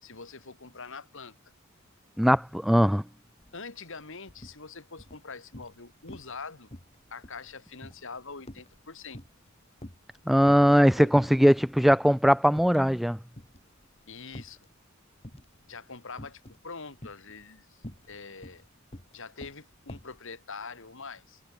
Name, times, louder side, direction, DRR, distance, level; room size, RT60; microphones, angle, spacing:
voice 1, 0.0-1.3 3.5-6.7 7.1-9.2 10.9-11.1 14.1-14.6 15.7-18.7 19.1-21.4, left 4 dB, 65° left, 2.6 m, -44 dB
voice 2, 2.2-3.0 10.3-13.2, equal, ahead, 0.3 m, -20 dB
sound 1, 3.4-3.6 3.9-4.6 5.0-5.8 6.1-6.4 6.7-9.5 9.8-10.8 11.1-11.6 11.9-12.1 12.5-13.1 13.3-14.7 15.2-15.6 16.2-16.6 17.0-20.2, left 1 dB, 30° left, 3.4 m, -46 dB
head